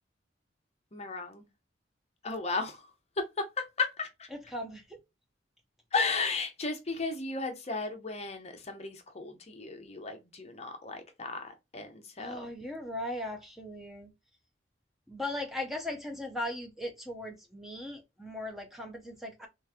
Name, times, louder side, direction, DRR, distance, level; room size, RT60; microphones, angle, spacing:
voice 1, 0.9-1.4 2.2-2.9 3.2-3.5 3.8-4.3 5.9-12.5, left 4 dB, 35° left, 0.7 m, -34 dB
voice 2, 4.3-5.0 12.2-14.1 15.1-19.5, left 1 dB, ahead, 0.6 m, -38 dB
3.3 x 3.0 x 3.4 m
head